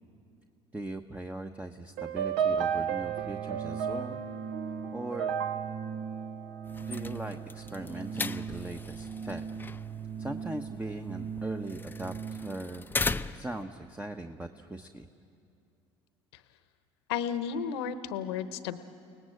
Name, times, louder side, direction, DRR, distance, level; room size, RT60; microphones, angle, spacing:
voice 1, 0.7-4.2 4.9-5.3 6.8-9.4 10.2-12.9 13.3-15.1, right 2 dB, 10° right, 6 dB, 1.0 m, -40 dB
sound 1, 2.0-7.3, right 8 dB, 65° right, 1.0 m, -33 dB
Organ, 2.4-12.7, right 6 dB, 40° right, 0.7 m, -40 dB
sound 2, 6.7-13.6, left 3 dB, 15° left, 0.6 m, -38 dB
voice 2, 17.1-18.8, left 7 dB, 75° left, 12 dB, 1.0 m, -33 dB
29.5 x 19.0 x 7.9 m, 2.5 s
hypercardioid pair, 65°, 14 cm